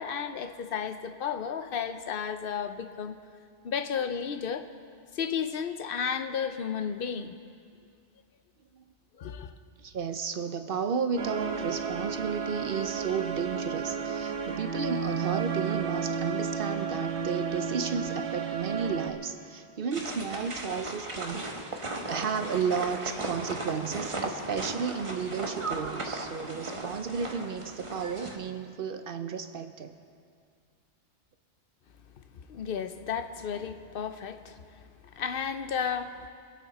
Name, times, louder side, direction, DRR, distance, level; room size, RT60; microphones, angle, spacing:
voice 1, 0.0-3.2 3.6-4.7 5.1-7.4 9.2-9.5 32.3-34.6 35.0-36.3, left 7 dB, 60° left, 9 dB, 0.8 m, -33 dB
voice 2, 9.8-21.5 22.1-29.9, right 6 dB, 55° right, 8 dB, 0.8 m, -33 dB
sound 1, 11.2-19.1, right 6 dB, 70° right, 1.2 m, -32 dB
sound 2, 19.9-28.4, right 2 dB, 30° right, 1.0 m, -36 dB
23.5 x 8.5 x 4.2 m, 2.3 s
omnidirectional pair, 1.2 m